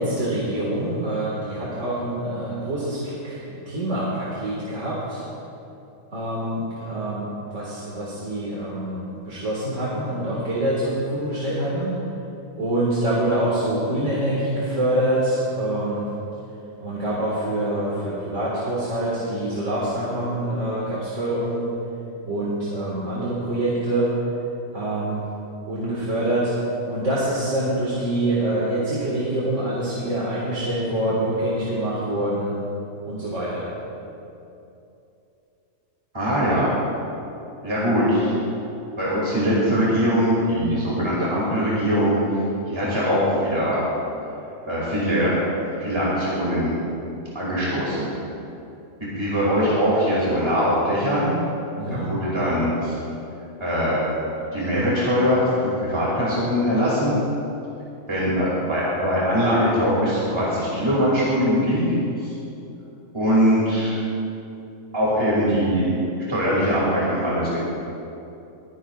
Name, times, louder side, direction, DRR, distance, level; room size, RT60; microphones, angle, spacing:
voice 1, 0.0-5.2 6.1-12.0 12.6-16.0 16.8-21.7 22.2-24.1 24.7-25.2 25.7-26.5 26.9-32.6 33.0-33.7 51.8-52.1, right 1 dB, 65° right, -7 dB, 2.3 m, -25 dB
voice 2, 36.1-36.7 37.6-38.3 39.0-42.2 42.7-43.8 44.7-45.3 45.8-46.7 47.3-48.1 49.0-51.4 51.9-53.0 53.6-54.0 54.5-57.2 58.1-61.8 62.2-62.3 63.1-64.0 64.9-66.0 66.3-67.6, equal, 20° right, -7 dB, 2.7 m, -22 dB
23.5 x 10.5 x 2.5 m, 2.8 s
omnidirectional pair, 1.4 m